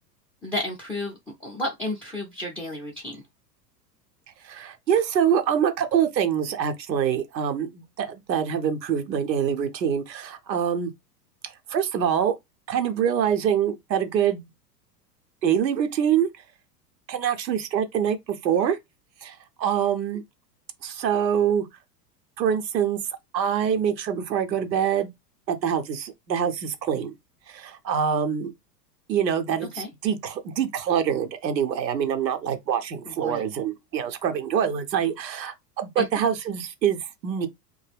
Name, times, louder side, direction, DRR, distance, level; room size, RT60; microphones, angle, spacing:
voice 1, 0.4-3.2 29.7-29.9 33.0-33.4 36.0-36.1, left 1 dB, 5° left, 0.4 m, -32 dB
voice 2, 4.4-10.9 11.7-12.3 12.7-14.5 15.4-16.3 17.1-18.2 18.4-18.8 19.2-20.2 20.8-21.7 22.4-23.0 23.3-25.1 25.5-27.1 27.5-28.5 29.1-37.5, right 8 dB, 85° right, 0.8 m, -25 dB
2.2 x 2.0 x 3.3 m
hypercardioid pair, 95°, 50 cm